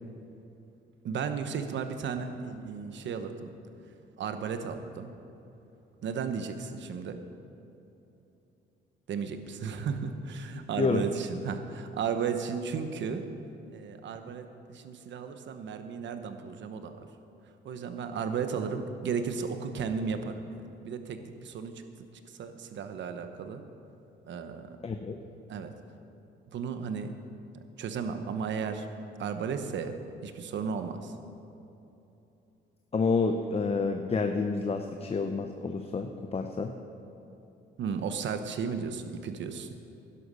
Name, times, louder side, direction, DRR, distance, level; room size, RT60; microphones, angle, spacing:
voice 1, 1.0-3.5 4.2-5.1 6.0-7.2 9.1-13.2 13.7-17.1 17.6-21.7 22.4-23.6 24.3-24.8 25.5-25.7 26.5-27.1 27.8-28.9 29.2-30.0 30.2-31.1 37.8-39.7, right 6 dB, 65° right, 8 dB, 1.1 m, -34 dB
voice 2, 10.8-11.1 24.8-25.2 32.9-36.7, left 4 dB, 30° left, 5 dB, 0.7 m, -29 dB
11.5 x 11.5 x 5.5 m, 2.9 s
cardioid pair, 90°, 20 cm